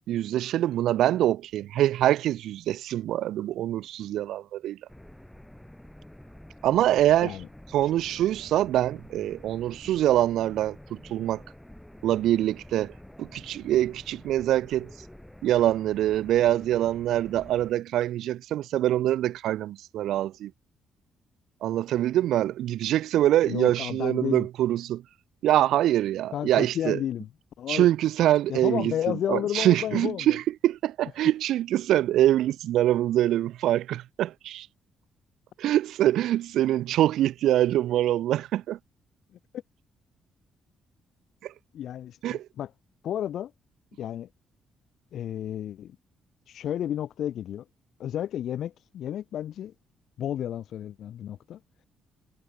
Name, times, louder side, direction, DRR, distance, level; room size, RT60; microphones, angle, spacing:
voice 1, 0.1-4.8 6.6-7.3 7.7-11.4 12.0-12.9 13.2-14.9 15.4-20.5 21.6-25.0 25.4-27.0 27.7-28.9 29.3-34.7 35.6-38.8 41.4-41.5 42.2-42.5, right 13 dB, 80° right, 0.3 m, -24 dB
sound 1, 4.9-17.7, left 1 dB, 5° left, 7.4 m, -48 dB
voice 2, 23.4-24.4 26.3-27.3 27.6-27.9 28.5-30.4 41.7-42.7 43.0-43.5 44.0-44.3 45.1-46.0 46.5-47.6 48.0-49.7 50.2-51.6, left 10 dB, 65° left, 1.5 m, -32 dB
cardioid pair, 145°, 0 cm